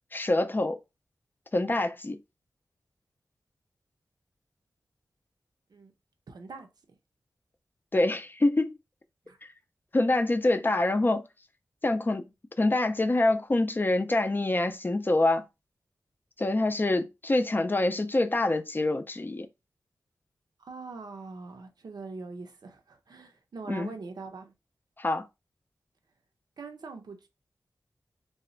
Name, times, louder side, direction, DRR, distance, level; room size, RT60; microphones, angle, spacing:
voice 1, 0.1-0.8 1.5-2.2 7.9-8.8 9.9-11.2 11.8-12.2 12.6-15.5 16.4-19.5 23.7-23.9 25.0-25.3, left 2 dB, 30° left, 0.4 m, -25 dB
voice 2, 6.3-6.7 9.3-9.4 20.6-24.5 26.6-27.3, right 4 dB, 75° right, 0.5 m, -42 dB
2.1 x 2.0 x 3.7 m
cardioid pair, 55°, 7 cm